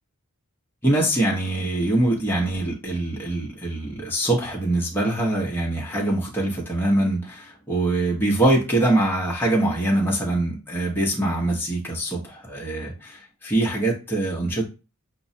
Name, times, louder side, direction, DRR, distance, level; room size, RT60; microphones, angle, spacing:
voice 1, 0.8-14.6, right 1 dB, 10° left, 0.7 m, -23 dB
5.9 x 2.0 x 2.7 m
head